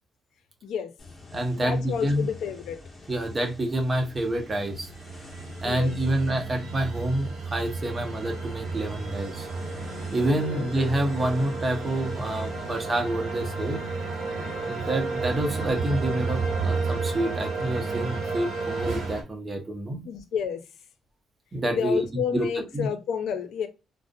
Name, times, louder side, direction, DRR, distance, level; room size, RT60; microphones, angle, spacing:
voice 1, 0.6-0.9 1.6-2.8 5.6-5.9 10.4-10.7 20.0-20.6 21.7-23.7, left 7 dB, 85° left, 0.5 m, -30 dB
sound 1, 1.0-13.0, left 3 dB, 30° left, 1.0 m, -46 dB
voice 2, 1.3-2.3 3.1-4.9 5.6-9.5 10.1-13.8 14.7-20.0 21.5-22.1 22.3-22.5 22.7-22.9, right 1 dB, 30° right, 0.7 m, -28 dB
sound 2, 4.5-19.2, right 3 dB, 90° right, 0.9 m, -32 dB
2.4 x 2.0 x 2.6 m
cardioid pair, 100°, 0 cm